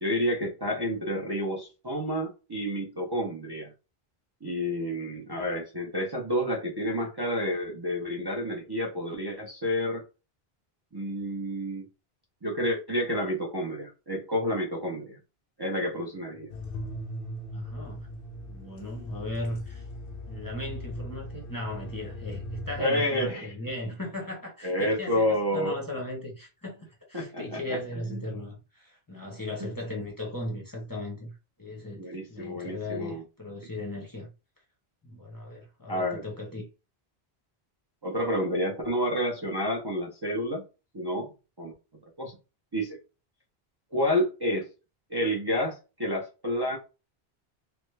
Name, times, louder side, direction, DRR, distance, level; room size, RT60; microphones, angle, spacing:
voice 1, 0.0-3.7 4.4-10.0 10.9-11.8 12.4-15.2 15.6-16.5 22.8-23.5 24.6-25.8 27.1-27.8 28.1-28.2 29.6-29.7 32.0-33.2 35.9-36.2 38.0-40.6 40.9-41.3 41.6-41.7 42.2-42.4 42.7-43.0 43.9-44.7 45.1-46.8, equal, 30° right, 0.6 m, -29 dB
sound 1, 16.5-22.8, left 1 dB, 65° left, 0.7 m, -39 dB
voice 2, 17.5-18.1 18.5-19.9 20.3-34.3 35.0-36.7, left 1 dB, 20° left, 0.7 m, -37 dB
3.3 x 2.1 x 3.2 m
omnidirectional pair, 1.1 m